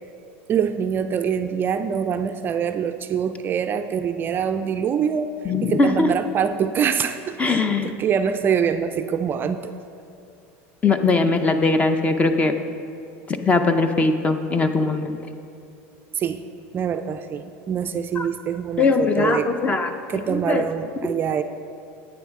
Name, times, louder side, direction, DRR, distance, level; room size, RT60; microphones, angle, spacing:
voice 1, 0.5-5.3 5.6-9.7 16.1-16.4 16.7-19.5 20.1-21.4, right 7 dB, 30° right, 8 dB, 0.3 m, -24 dB
voice 2, 5.4-6.1 7.4-7.9 10.8-12.5 13.3-15.2 18.2-18.3 18.8-19.9 20.3-20.6, left 3 dB, 20° left, 8 dB, 0.5 m, -20 dB
10.5 x 8.8 x 3.6 m, 2.6 s
supercardioid pair, 130°, 7 cm